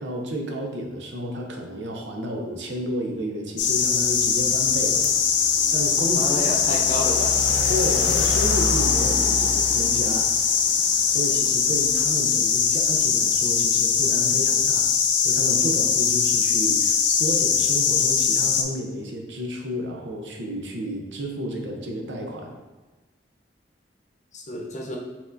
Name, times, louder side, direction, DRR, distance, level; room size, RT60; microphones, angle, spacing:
voice 1, 0.0-5.1 5.7-6.4 7.7-10.3 11.1-14.9 15.2-22.6, equal, 80° right, 1 dB, 0.7 m, -31 dB
sound 1, 3.6-18.6, left 6 dB, 80° left, 0.5 m, -21 dB
voice 2, 6.1-7.4 24.3-25.0, left 1 dB, 45° left, 0 dB, 0.7 m, -30 dB
4.7 x 3.5 x 2.6 m, 1.2 s
head